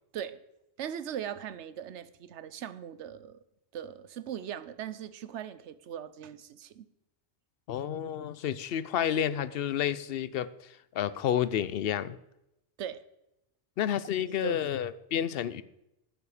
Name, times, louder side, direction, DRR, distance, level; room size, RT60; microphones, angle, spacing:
voice 1, 0.8-3.4 3.7-6.9 12.8-13.0 14.3-14.6, right 9 dB, 85° right, 14 dB, 1.0 m, -39 dB
voice 2, 7.7-12.2 13.8-15.6, left 9 dB, 65° left, 16 dB, 0.8 m, -30 dB
12.0 x 9.1 x 4.9 m, 0.86 s
omnidirectional pair, 1.2 m